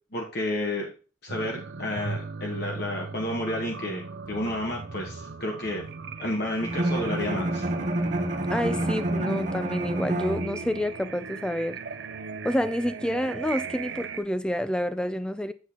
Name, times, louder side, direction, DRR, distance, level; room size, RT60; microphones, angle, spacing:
voice 1, 0.1-0.9 1.2-4.0 4.3-5.8 6.2-7.7, left 1 dB, 50° left, 1.3 m, -31 dB
sound 1, 1.3-14.2, right 5 dB, 55° right, 0.6 m, -38 dB
Bowed string instrument, 6.6-10.9, right 1 dB, 35° right, 0.9 m, -28 dB
voice 2, 8.5-11.8 12.4-15.5, equal, 5° left, 0.3 m, -28 dB
8.1 x 7.5 x 2.9 m
head